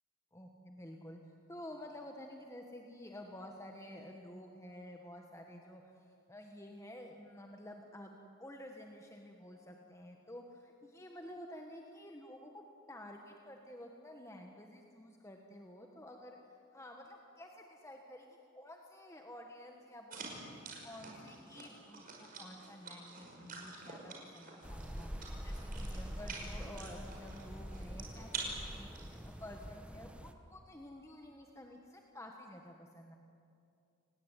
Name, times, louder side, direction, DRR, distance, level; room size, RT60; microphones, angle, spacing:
voice 1, 0.3-20.2 20.5-22.0 22.4-33.2, left 1 dB, 15° left, 2 dB, 1.6 m, -51 dB
sound 1, 20.1-29.6, right 3 dB, 45° right, 5.5 m, -48 dB
sound 2, 24.6-30.3, equal, 5° right, 1.1 m, -45 dB
28.5 x 19.5 x 9.2 m, 2.5 s
head